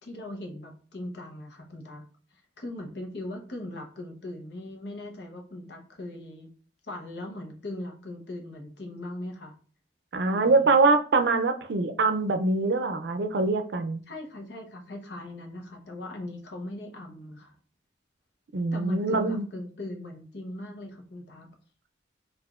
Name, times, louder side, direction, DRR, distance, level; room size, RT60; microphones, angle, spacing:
voice 1, 0.0-2.0 2.3-6.5 6.8-9.5 10.3-10.7 14.1-17.6 18.7-21.5, left 1 dB, 80° left, 2 dB, 0.9 m, -39 dB
voice 2, 10.1-14.0 18.5-19.5, right 3 dB, 80° right, 8 dB, 0.4 m, -24 dB
4.8 x 2.5 x 2.4 m, 0.42 s
head